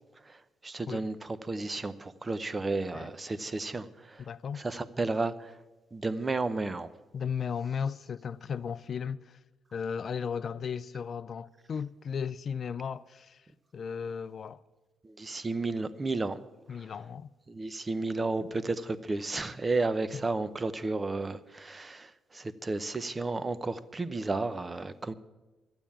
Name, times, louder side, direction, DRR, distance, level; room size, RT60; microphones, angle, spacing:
voice 1, 0.2-4.3 4.5-5.6 5.9-6.9 15.0-16.4 16.7-16.9 17.5-25.1, right 3 dB, 25° right, 0.7 m, -33 dB
voice 2, 4.2-4.6 7.1-9.4 9.7-13.4 13.7-14.6 16.7-17.3, left 7 dB, 50° left, 0.4 m, -35 dB
12.5 x 8.9 x 8.5 m
cardioid pair, 90°, 0 cm